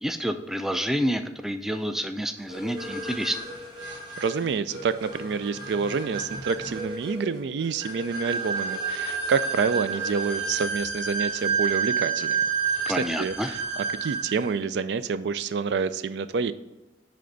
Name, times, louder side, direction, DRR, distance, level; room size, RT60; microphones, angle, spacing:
voice 1, 0.0-3.4 12.9-13.5, equal, ahead, 7 dB, 0.3 m, -28 dB
sound 1, 2.5-14.4, right 5 dB, 25° right, 2.4 m, -30 dB
voice 2, 3.8-12.4 12.9-13.6 14.0-16.5, right 5 dB, 75° right, 13 dB, 0.4 m, -28 dB
10.0 x 3.4 x 3.9 m, 1.0 s
head